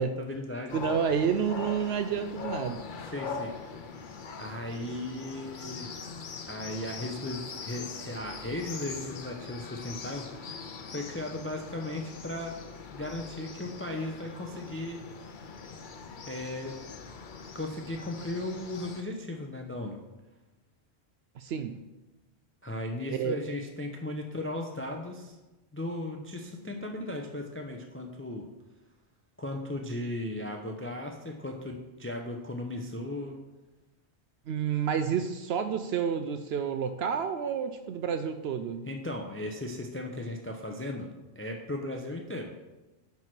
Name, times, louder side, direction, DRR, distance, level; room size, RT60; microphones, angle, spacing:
voice 1, 0.0-1.0 3.1-3.5 4.4-5.9 6.5-12.6 12.9-15.0 16.2-16.8 17.5-20.0 22.6-25.4 25.7-28.5 29.4-33.4 38.9-41.1 41.4-42.5, left 1 dB, 15° left, 3 dB, 0.6 m, -36 dB
sound 1, 0.7-19.0, left 5 dB, 50° left, 0.9 m, -42 dB
voice 2, 0.7-2.9 21.4-21.8 23.1-23.4 34.5-38.9, right 7 dB, 70° right, 9 dB, 0.8 m, -30 dB
10.5 x 4.7 x 6.1 m, 1.1 s
omnidirectional pair, 1.1 m